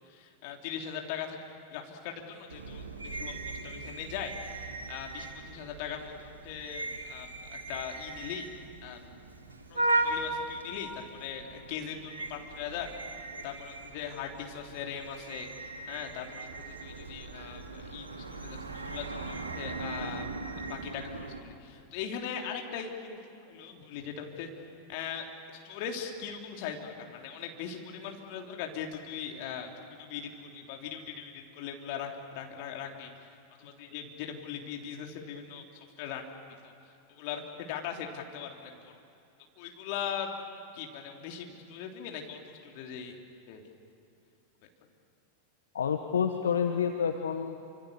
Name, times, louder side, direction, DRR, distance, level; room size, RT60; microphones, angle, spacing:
voice 1, 0.0-4.3 4.9-8.5 8.8-9.1 9.7-12.9 13.4-15.5 15.9-20.3 20.6-23.2 23.5-24.5 24.9-25.3 25.6-33.1 33.6-35.6 36.0-36.3 36.6-36.7 37.1-38.9 39.6-43.2 43.5-43.6, left 8 dB, 45° left, 2 dB, 3.4 m, -40 dB
sound 1, 2.5-21.4, right 2 dB, 75° right, 2.7 m, -38 dB
voice 2, 45.7-47.7, left 7 dB, 65° left, 6 dB, 1.2 m, -29 dB
28.0 x 26.0 x 7.0 m, 2.7 s
figure-of-eight pair, 90°, 0 cm